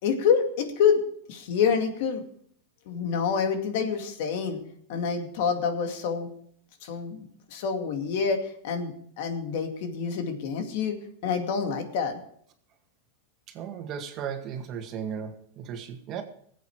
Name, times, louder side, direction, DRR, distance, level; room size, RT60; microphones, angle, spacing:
voice 1, 0.0-1.0 1.3-2.2 2.9-4.6 4.9-6.3 6.8-7.3 7.5-11.0 11.2-12.2, left 6 dB, 65° left, 5 dB, 2.3 m, -27 dB
voice 2, 13.5-16.2, right 7 dB, 40° right, 5 dB, 1.9 m, -35 dB
19.0 x 8.3 x 4.9 m, 0.63 s
supercardioid pair, 145°, 0 cm